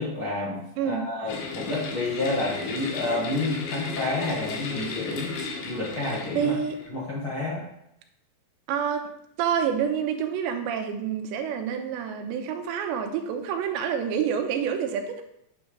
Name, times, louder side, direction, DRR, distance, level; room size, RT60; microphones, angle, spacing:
voice 1, 0.0-5.3 5.6-6.5 6.9-7.7, left 2 dB, 60° left, -6 dB, 1.4 m, -29 dB
voice 2, 0.8-1.1 6.3-6.8 8.7-9.1 9.4-15.2, right 8 dB, 90° right, 5 dB, 3.1 m, -27 dB
sound 1, 1.3-6.9, left 4 dB, 90° left, 3.6 m, -35 dB
9.2 x 7.3 x 3.3 m, 0.78 s
omnidirectional pair, 5.0 m